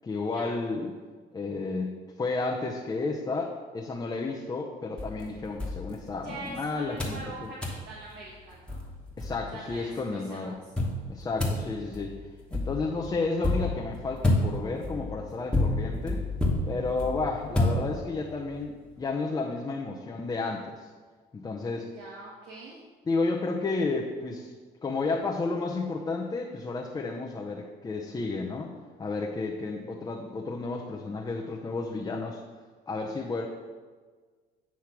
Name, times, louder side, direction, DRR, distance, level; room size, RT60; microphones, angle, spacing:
voice 1, 0.0-0.9 1.3-7.5 9.2-10.6 11.1-12.2 12.5-16.2 16.6-20.9 21.3-21.9 23.1-24.5 24.8-28.7 29.0-32.4 32.9-33.5, left 3 dB, 25° left, 0 dB, 0.6 m, -32 dB
sound 1, 5.0-6.5 7.0-7.3 7.6-7.9 8.4-8.5 8.7-9.8 10.8-18.3, left 2 dB, 5° left, 1.2 m, -30 dB
voice 2, 6.2-7.6 7.8-8.9 9.5-10.7 21.9-22.8, right 2 dB, 85° right, -5 dB, 1.2 m, -43 dB
8.5 x 3.1 x 5.9 m, 1.5 s
cardioid pair, 110°, 17 cm